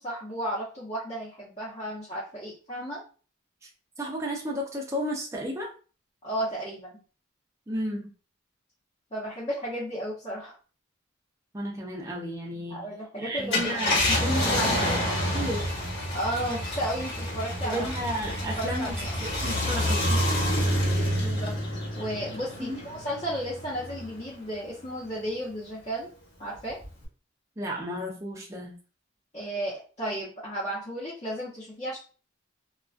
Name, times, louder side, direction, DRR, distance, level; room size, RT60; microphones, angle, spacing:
voice 1, 0.0-3.0 6.2-7.0 9.1-10.5 12.7-13.9 14.5-15.0 16.1-17.9 18.4-19.2 21.2-21.6 22.0-26.1 26.4-26.8 29.3-32.0, right 1 dB, 30° left, -10 dB, 0.8 m, -33 dB
voice 2, 4.0-5.7 7.7-8.1 11.5-12.9 13.2-15.0 15.3-15.7 17.6-20.2 22.6-22.8 27.6-28.8, equal, 15° right, -1 dB, 0.5 m, -33 dB
Car, 13.4-24.2 24.7-24.8 26.8-27.1, left 1 dB, 60° left, 1.0 m, -28 dB
2.3 x 2.2 x 2.4 m, 0.36 s
head